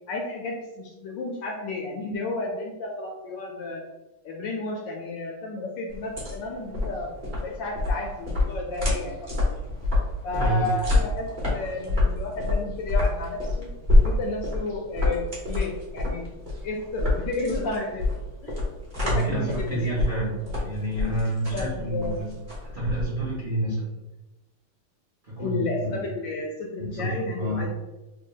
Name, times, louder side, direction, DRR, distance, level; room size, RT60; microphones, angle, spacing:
voice 1, 0.1-3.8 4.2-9.3 10.2-13.7 14.0-16.3 16.6-18.1 18.4-18.6 19.0-20.0 21.5-22.2 25.4-27.7, left 2 dB, 75° left, 0 dB, 1.1 m, -32 dB
sound 1, 5.9-23.4, left 2 dB, 30° right, 0.8 m, -27 dB
voice 2, 10.3-10.6 18.9-20.4 20.6-22.3 22.7-24.0 25.2-26.1 26.8-27.6, right 1 dB, 65° right, -7 dB, 0.5 m, -29 dB
3.4 x 2.2 x 3.7 m, 1.1 s
omnidirectional pair, 2.4 m